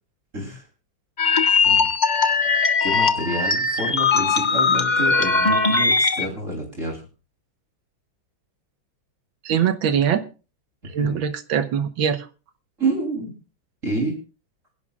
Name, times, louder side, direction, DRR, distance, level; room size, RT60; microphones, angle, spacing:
voice 1, 0.3-0.6 1.6-1.9 2.8-7.0 11.0-11.2 12.8-13.3 13.8-14.2, right 2 dB, 40° right, -2 dB, 3.7 m, -28 dB
sound 1, 1.2-6.3, left 4 dB, 30° left, 0.8 m, -20 dB
voice 2, 9.4-10.2 10.8-12.3, right 8 dB, 80° right, 9 dB, 1.9 m, -22 dB
27.0 x 11.0 x 2.4 m, 0.34 s
omnidirectional pair, 2.1 m